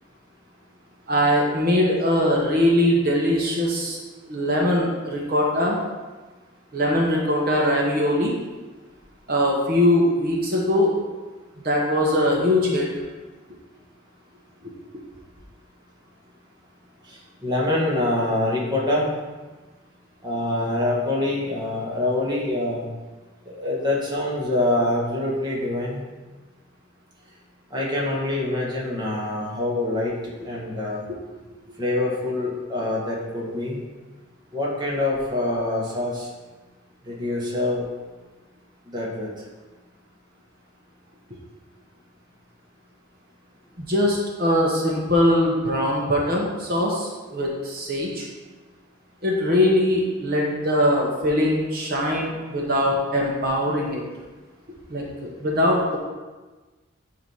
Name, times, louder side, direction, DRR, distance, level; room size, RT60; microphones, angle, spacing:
voice 1, 1.1-4.0 4.3-5.8 6.7-8.3 9.3-10.9 11.6-12.9 14.6-14.7 43.8-48.3 49.2-54.0 54.9-56.0, left 1 dB, 45° right, -2 dB, 1.1 m, -21 dB
voice 2, 17.1-19.1 20.2-22.9 23.5-26.0 27.7-30.1 30.4-31.0 31.8-33.8 34.5-36.3 37.1-37.8 38.9-39.3, left 1 dB, 20° right, -4 dB, 1.4 m, -25 dB
8.9 x 3.0 x 5.6 m, 1.3 s
head